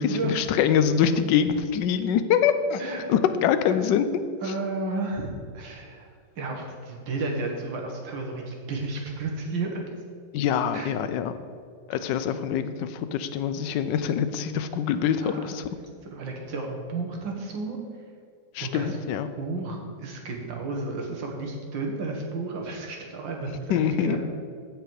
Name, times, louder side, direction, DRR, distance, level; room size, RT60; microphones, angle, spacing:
voice 1, 0.0-2.8 3.1-4.2 10.3-11.3 11.9-15.7 18.5-19.3 23.7-24.2, left 8 dB, 80° left, 11 dB, 1.3 m, -24 dB
voice 2, 4.4-6.1 6.4-9.8 10.7-10.9 15.2-15.5 16.1-17.8 18.6-19.0 19.4-24.2, right 3 dB, 90° right, 1 dB, 2.2 m, -32 dB
15.0 x 5.1 x 4.8 m, 2.1 s
omnidirectional pair, 2.0 m